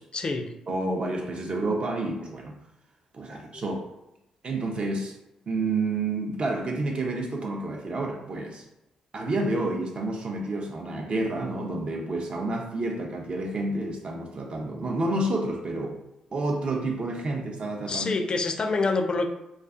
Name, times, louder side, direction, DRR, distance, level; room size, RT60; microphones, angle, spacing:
voice 1, 0.1-0.5 3.3-3.6 17.9-19.3, left 3 dB, 40° left, 4 dB, 0.3 m, -27 dB
voice 2, 0.7-2.6 3.1-3.9 4.4-5.2 5.5-8.7 9.1-16.0 16.3-18.1, right 2 dB, 45° right, 2 dB, 0.5 m, -29 dB
2.4 x 2.3 x 2.4 m, 0.88 s
hypercardioid pair, 40°, 2 cm